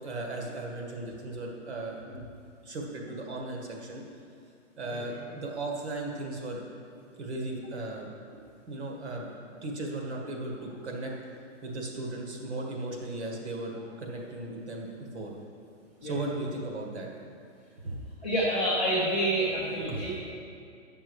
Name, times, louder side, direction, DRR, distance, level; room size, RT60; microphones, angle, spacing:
voice 1, 0.0-2.3 2.6-4.0 4.8-6.6 7.2-8.1 8.7-9.3 9.6-11.1 11.6-14.9 15.1-15.3 16.0-17.1 17.8-18.1 19.9-20.0, right 2 dB, 60° right, 0 dB, 1.8 m, -36 dB
voice 2, 18.2-20.3, right 1 dB, 10° left, -12 dB, 0.6 m, -28 dB
8.9 x 6.3 x 4.8 m, 2.4 s
hypercardioid pair, 180°, 37 cm